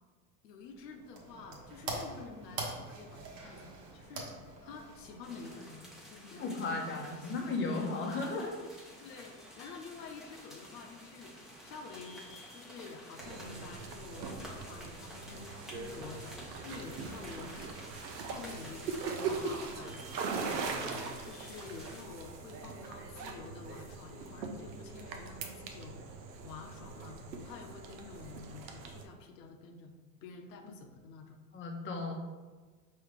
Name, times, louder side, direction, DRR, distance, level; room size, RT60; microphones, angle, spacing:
voice 1, 0.4-4.3 4.6-7.3 9.0-12.2 12.5-17.8 18.2-20.7 21.2-26.0 26.4-27.2 27.4-29.9 30.2-31.4, left 4 dB, 75° left, 3 dB, 0.7 m, -49 dB
sound 1, 0.7-6.0, right 2 dB, 60° right, 1.2 m, -44 dB
sound 2, 5.2-22.0, equal, ahead, 0.9 m, -51 dB
voice 2, 6.3-8.6 31.5-32.1, left 3 dB, 25° left, 0 dB, 0.8 m, -35 dB
sound 3, 13.2-29.0, right 4 dB, 85° right, 0.7 m, -41 dB
4.7 x 2.9 x 3.3 m, 1.3 s
hypercardioid pair, 90°, 49 cm